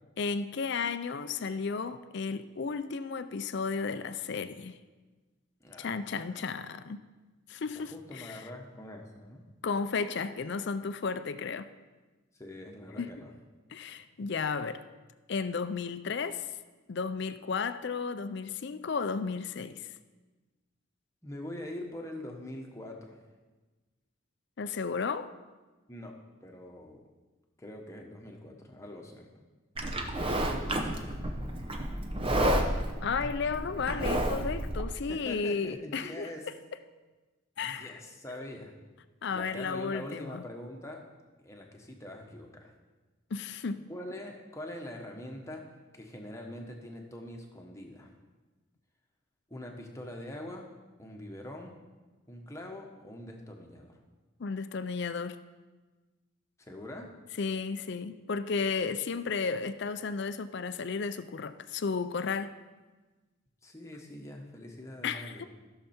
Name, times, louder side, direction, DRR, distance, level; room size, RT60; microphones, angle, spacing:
voice 1, 0.2-4.8 5.8-7.0 7.5-8.4 9.6-11.7 13.0-13.1 13.7-14.8 15.3-16.5 16.9-19.9 24.6-25.3 33.0-36.3 37.6-38.0 39.2-40.4 43.3-43.8 54.4-55.4 57.4-62.5 65.0-65.5, left 5 dB, 55° left, 11 dB, 0.4 m, -33 dB
voice 2, 5.6-6.4 7.7-9.4 12.3-13.3 21.2-23.2 25.9-26.1 26.4-27.0 27.6-29.5 30.3-31.5 35.1-36.5 37.6-38.7 39.3-41.1 41.4-42.7 43.9-48.1 49.5-50.7 51.0-51.7 52.3-54.0 56.6-57.1 63.6-65.5, left 1 dB, 15° left, 1 dB, 1.1 m, -44 dB
Livestock farm animals working animals, 29.8-34.8, right 1 dB, 25° right, 0.8 m, -31 dB
15.0 x 6.7 x 4.4 m, 1.2 s
head